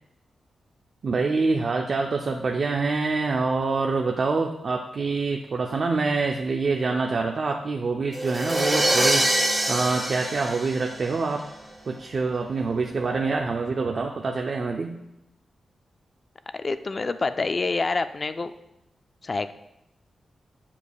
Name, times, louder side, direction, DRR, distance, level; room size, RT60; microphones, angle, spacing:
voice 1, 1.0-11.5 11.9-15.0, right 4 dB, 45° right, 2 dB, 0.4 m, -26 dB
sound 1, 8.1-11.4, right 1 dB, 10° right, 1.1 m, -24 dB
voice 2, 16.5-18.5 19.2-19.5, left 3 dB, 30° left, 11 dB, 0.3 m, -27 dB
9.8 x 7.1 x 2.3 m, 0.87 s
wide cardioid pair, 160°, 0 cm